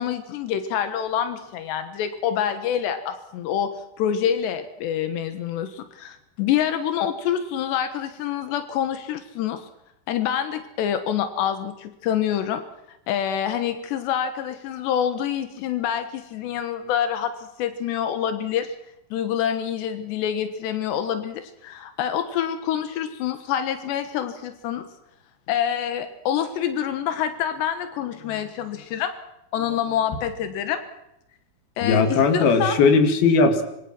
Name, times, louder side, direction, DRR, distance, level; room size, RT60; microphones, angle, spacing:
voice 1, 0.0-3.7 4.0-9.7 10.1-12.6 13.1-18.8 19.1-24.9 25.5-29.1 29.5-30.8 31.8-32.8, left 9 dB, 90° left, 9 dB, 3.6 m, -26 dB
voice 2, 31.8-33.6, left 4 dB, 65° left, 7 dB, 4.1 m, -18 dB
26.0 x 24.5 x 6.1 m, 0.86 s
omnidirectional pair, 4.8 m